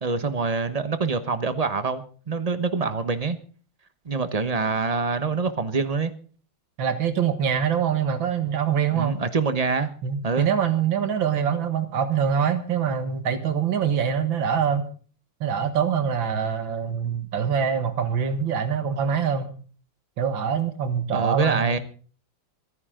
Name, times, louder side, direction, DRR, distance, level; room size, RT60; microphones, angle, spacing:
voice 1, 0.0-3.4 4.0-6.1 8.9-9.9 10.2-10.5 21.1-21.8, right 4 dB, 30° right, 11 dB, 0.8 m, -25 dB
voice 2, 6.8-9.2 10.0-14.9 15.4-19.5 20.2-21.8, right 7 dB, 85° right, 9 dB, 2.1 m, -24 dB
26.5 x 9.6 x 3.8 m, 0.41 s
omnidirectional pair, 2.1 m